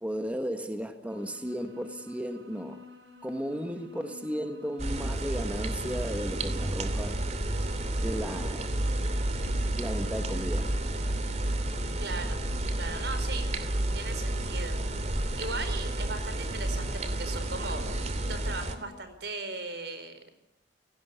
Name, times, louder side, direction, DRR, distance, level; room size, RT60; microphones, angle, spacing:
voice 1, 0.0-2.8 3.2-7.3 8.0-8.8 9.8-10.8, equal, 10° right, 1.5 m, -35 dB
sound 1, 1.1-18.9, left 3 dB, 90° right, 7.3 m, -51 dB
sound 2, 4.8-18.8, right 1 dB, 40° right, 2.7 m, -31 dB
voice 2, 12.0-12.4 12.8-13.5 13.9-14.8 15.4-17.9 18.2-20.2, right 3 dB, 65° right, 4.9 m, -38 dB
29.5 x 18.5 x 8.3 m
head